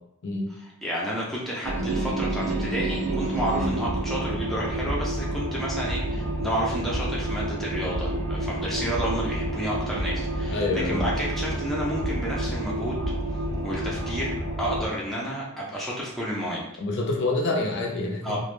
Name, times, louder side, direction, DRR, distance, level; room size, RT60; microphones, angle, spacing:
voice 1, 0.6-13.0 13.6-16.6 18.2-18.4, equal, ahead, -6 dB, 0.3 m, -31 dB
sound 1, 1.6-14.9, right 1 dB, 60° right, 0.5 m, -29 dB
voice 2, 10.5-11.0 16.8-18.4, left 2 dB, 55° left, 1 dB, 0.5 m, -27 dB
2.3 x 2.0 x 3.0 m, 0.81 s
head